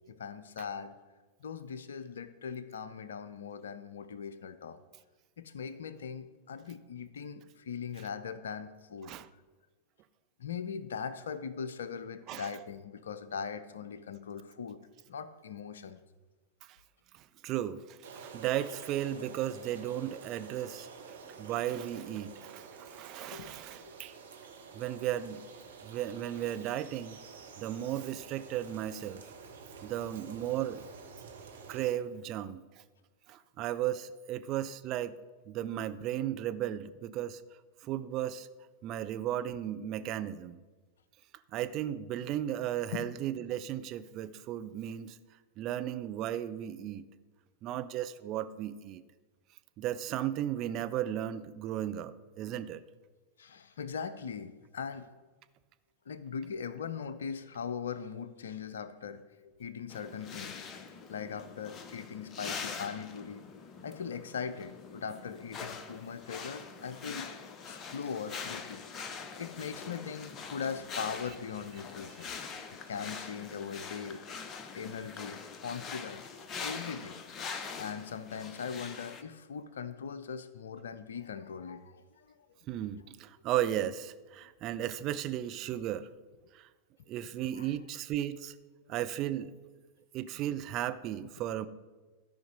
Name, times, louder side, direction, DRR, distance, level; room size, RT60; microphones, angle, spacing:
voice 1, 0.1-0.9 1.4-4.8 5.4-9.1 10.4-14.8 15.1-16.0 23.3-23.5 23.9-24.0 42.9-43.1 53.4-55.1 56.1-60.6 61.1-63.4 63.8-67.3 67.7-68.9 69.4-72.3 72.7-74.2 74.7-76.3 76.6-77.2 77.8-82.3 84.4-84.5 87.6-87.7, left 6 dB, 65° left, 13 dB, 0.5 m, -40 dB
voice 2, 17.1-24.1 24.7-25.4 25.8-27.2 27.6-29.2 29.8-30.9 31.7-32.6 33.3-35.2 35.5-37.4 37.8-38.5 38.8-40.6 41.5-45.2 45.6-47.0 47.6-49.0 49.8-52.8 72.2-72.3 82.7-86.1 86.5-86.7 87.1-88.6 88.9-89.5 90.1-91.7, right 12 dB, 35° right, 11 dB, 0.5 m, -35 dB
sound 1, 18.0-31.9, right 5 dB, 65° right, 1.2 m, -49 dB
sound 2, 59.9-79.2, left 5 dB, 30° left, 0.8 m, -43 dB
13.0 x 5.1 x 5.2 m, 1.3 s
figure-of-eight pair, 90°, 0 cm